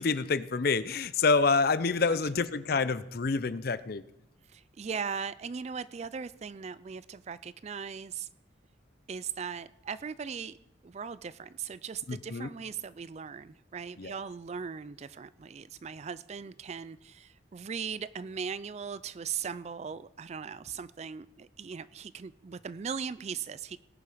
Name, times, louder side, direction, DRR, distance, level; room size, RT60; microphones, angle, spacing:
voice 1, 0.0-4.0 12.1-12.5 14.0-14.1, left 4 dB, 55° left, 15 dB, 0.6 m, -27 dB
voice 2, 4.5-8.3 9.1-10.6 10.8-23.8, right 6 dB, 35° right, 17 dB, 0.3 m, -39 dB
18.5 x 6.9 x 5.0 m, 0.79 s
head